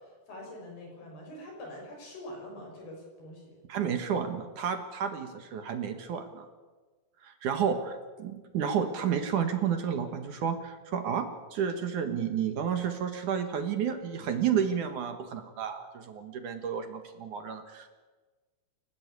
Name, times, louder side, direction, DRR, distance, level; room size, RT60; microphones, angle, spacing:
voice 1, 0.0-3.5, left 1 dB, 85° left, 0 dB, 8.5 m, -44 dB
voice 2, 3.7-6.5 7.2-17.9, right 7 dB, 60° right, 7 dB, 2.7 m, -31 dB
29.0 x 14.5 x 8.3 m, 1.3 s
omnidirectional pair, 4.5 m